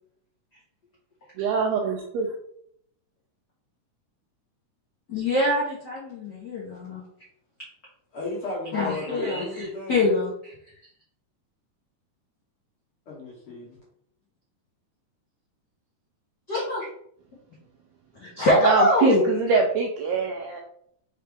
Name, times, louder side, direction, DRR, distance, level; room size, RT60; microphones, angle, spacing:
voice 1, 1.4-2.3 18.6-20.6, right 5 dB, 90° right, 2 dB, 1.5 m, -24 dB
voice 2, 5.1-7.0 8.7-10.5 16.5-16.9 18.2-19.2, left 2 dB, 90° left, -5 dB, 0.9 m, -24 dB
voice 3, 8.1-10.0 13.1-13.8, left 2 dB, 60° left, -5 dB, 1.5 m, -34 dB
4.6 x 3.3 x 3.4 m, 0.68 s
omnidirectional pair, 3.6 m